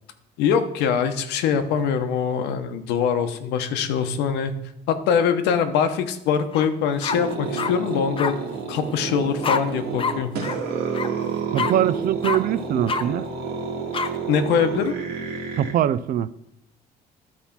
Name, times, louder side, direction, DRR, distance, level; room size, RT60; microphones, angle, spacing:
voice 1, 0.4-4.5 4.9-8.4 8.7-10.3 14.3-14.9, left 7 dB, 90° left, 0.9 m, -23 dB
sound 1, 6.5-6.7 7.0-7.7 8.2-8.3 9.4-9.6 10.0-10.1 10.4-10.6 10.9-11.1 11.6-11.7 12.2-12.4 12.9-13.0 13.9-14.1, left 6 dB, 30° left, 0.6 m, -26 dB
sound 2, 7.1-15.7, right 5 dB, 75° right, 1.8 m, -30 dB
voice 2, 11.5-13.3 15.6-16.3, right 11 dB, 60° right, 0.4 m, -22 dB
12.0 x 4.3 x 5.8 m
cardioid pair, 110°, 17 cm